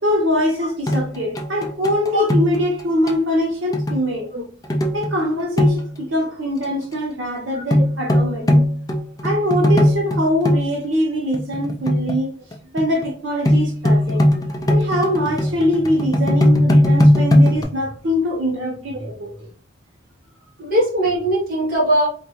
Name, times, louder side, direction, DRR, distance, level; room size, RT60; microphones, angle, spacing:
voice 1, 0.0-4.3 4.9-8.6 9.2-12.3 12.7-14.3 14.7-19.3 21.1-21.2, left 1 dB, 90° right, 1.0 m, -23 dB
sound 1, 0.9-2.8 3.1-3.2 3.7-4.1 4.7-5.2 5.6-6.0 7.7-10.7 11.3-12.2 12.5-13.1 13.5-17.6, left 1 dB, 20° left, 0.3 m, -18 dB
voice 2, 20.6-22.1, right 1 dB, 50° right, 1.1 m, -20 dB
3.2 x 2.6 x 2.9 m
head